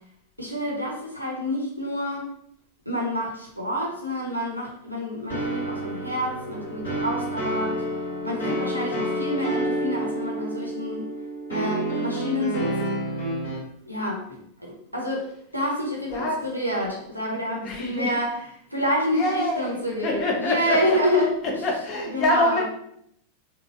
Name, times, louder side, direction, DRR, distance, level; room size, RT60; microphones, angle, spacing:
voice 1, 0.4-2.3 2.9-7.9 8.2-11.1 11.5-12.7 13.9-15.2 15.5-18.3 18.7-21.3 22.1-22.6, equal, 90° right, -3 dB, 0.6 m, -28 dB
sound 1, 5.3-13.6, right 1 dB, 55° left, 1.4 m, -29 dB
voice 2, 8.4-8.8 15.2-15.4 16.1-16.7 17.6-18.2 19.1-22.6, left 2 dB, 35° left, 0 dB, 0.8 m, -27 dB
3.8 x 2.2 x 2.5 m, 0.73 s
figure-of-eight pair, 90°, 0 cm